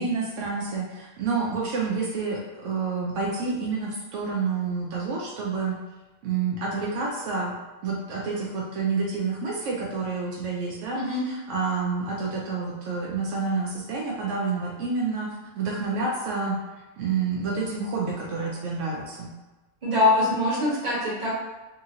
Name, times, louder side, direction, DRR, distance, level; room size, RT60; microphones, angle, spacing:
voice 1, 0.0-5.7 6.2-7.5 7.8-16.6 17.0-19.3, right 4 dB, 80° right, -4 dB, 0.9 m, -29 dB
voice 2, 19.8-21.3, left 2 dB, 40° right, -7 dB, 1.2 m, -23 dB
2.8 x 2.6 x 2.7 m, 1.2 s
omnidirectional pair, 1.3 m